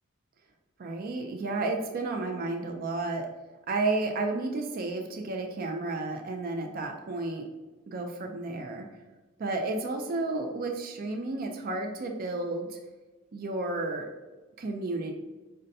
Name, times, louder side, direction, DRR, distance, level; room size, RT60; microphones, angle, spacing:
voice 1, 0.8-3.3 3.7-7.5 7.9-8.9 9.4-12.8 13.3-14.1 14.6-15.1, right 2 dB, 45° right, 3 dB, 0.4 m, -32 dB
5.1 x 2.2 x 2.6 m, 1.2 s
head